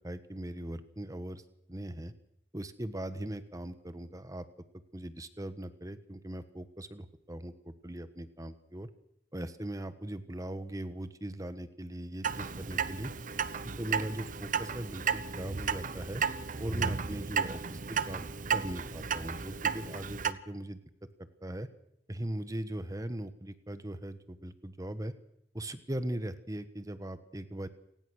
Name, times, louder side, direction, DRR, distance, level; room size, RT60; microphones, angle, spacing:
voice 1, 0.0-1.4 1.7-2.1 2.5-4.5 4.9-8.9 9.3-13.1 13.8-16.2 16.6-21.7 22.1-25.1 25.5-27.7, right 1 dB, 20° right, 12 dB, 1.3 m, -39 dB
Clock, 12.2-20.3, right 6 dB, 50° right, 0.9 m, -34 dB
28.0 x 18.5 x 6.5 m, 0.75 s
head